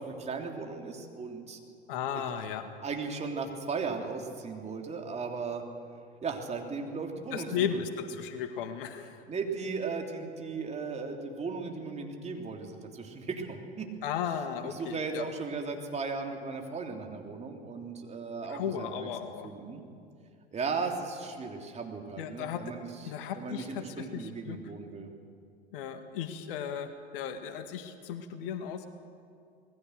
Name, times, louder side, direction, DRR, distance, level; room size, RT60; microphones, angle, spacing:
voice 1, 0.0-1.6 2.1-2.2 2.8-5.6 6.2-7.8 9.3-13.9 14.7-19.1 19.4-19.8 20.5-25.1, right 4 dB, 20° right, 2 dB, 3.2 m, -36 dB
voice 2, 1.9-2.7 7.3-9.2 14.0-15.3 18.5-19.5 22.2-22.6 23.1-24.6 25.7-28.9, left 8 dB, 55° left, 8 dB, 1.9 m, -35 dB
26.5 x 20.0 x 6.6 m, 2.3 s
figure-of-eight pair, 90°, 32 cm